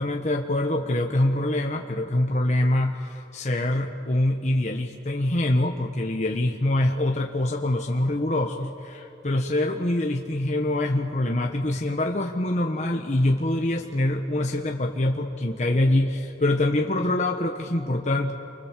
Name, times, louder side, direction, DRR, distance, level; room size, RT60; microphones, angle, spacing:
voice 1, 0.0-18.3, left 1 dB, 40° left, 2 dB, 1.2 m, -24 dB
28.5 x 24.5 x 7.5 m, 2.6 s
head